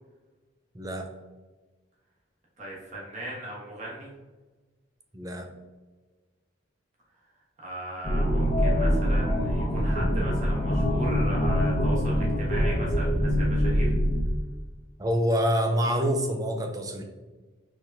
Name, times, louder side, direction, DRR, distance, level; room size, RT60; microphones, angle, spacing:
voice 1, 0.7-1.1 5.1-5.5 15.0-17.1, equal, 20° right, 4 dB, 0.5 m, -26 dB
voice 2, 2.6-4.1 7.6-13.9, right 1 dB, 40° right, -5 dB, 1.4 m, -38 dB
sound 1, 8.0-14.2, equal, 35° left, 0.7 m, -24 dB
4.6 x 3.7 x 2.7 m, 1.3 s
head